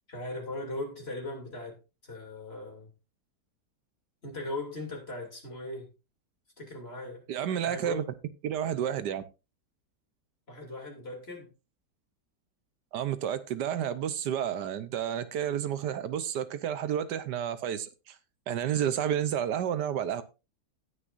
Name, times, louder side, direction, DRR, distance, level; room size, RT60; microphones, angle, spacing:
voice 1, 0.1-2.9 4.2-5.9 6.6-7.3 7.6-8.1 10.5-11.5, left 2 dB, 35° left, 3.0 m, -39 dB
voice 2, 7.3-8.0 8.4-9.2 12.9-18.1 18.5-20.2, right 9 dB, 75° right, 1.3 m, -30 dB
18.5 x 6.5 x 2.5 m
omnidirectional pair, 1.9 m